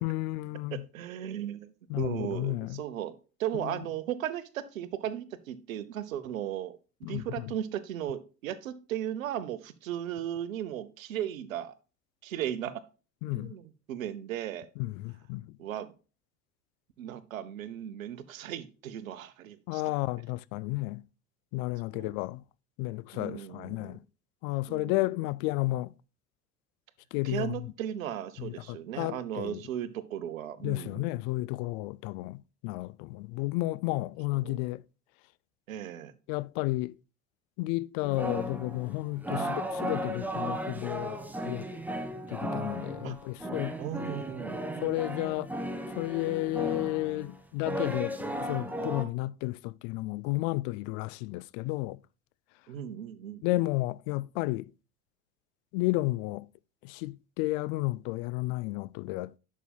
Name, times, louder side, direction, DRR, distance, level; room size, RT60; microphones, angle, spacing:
voice 1, 0.0-0.8 1.9-2.8 3.6-3.8 7.0-7.5 13.2-13.5 14.8-15.4 19.7-21.0 21.5-22.4 22.8-24.0 24.4-25.9 27.1-27.5 28.4-29.6 30.6-34.8 36.3-36.9 37.6-41.2 41.5-41.7 42.3-43.8 44.8-45.5 46.0-52.0 53.4-54.7 55.7-56.5 56.8-59.3, left 19 dB, 55° left, 0.5 m, -32 dB
voice 2, 0.7-11.7 12.2-12.8 13.3-14.7 15.6-15.9 17.0-19.8 21.9-22.1 23.1-24.0 24.7-25.0 27.2-31.1 34.3-34.6 35.7-36.1 39.3-39.7 43.0-43.2 43.8-44.7 52.7-53.4, right 10 dB, 80° right, 0.8 m, -36 dB
sound 1, 38.0-49.0, equal, 5° right, 1.2 m, -35 dB
11.0 x 6.1 x 2.3 m
figure-of-eight pair, 65°, 41 cm